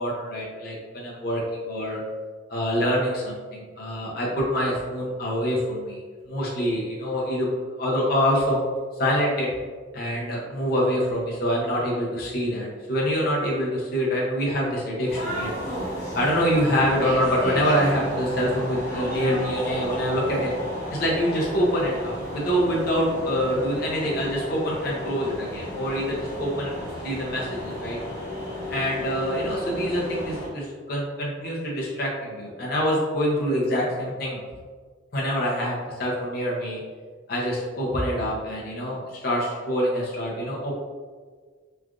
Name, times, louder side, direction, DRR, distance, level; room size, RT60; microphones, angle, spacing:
voice 1, 0.0-2.0 2.5-6.0 6.3-7.5 7.8-8.6 9.0-9.5 9.9-15.5 16.2-20.5 20.9-28.0 28.7-34.4 35.1-36.8 37.3-40.7, equal, 50° left, -4 dB, 0.6 m, -25 dB
sound 1, 15.1-30.5, equal, 15° left, 0.7 m, -33 dB
3.2 x 2.4 x 2.3 m, 1.5 s
head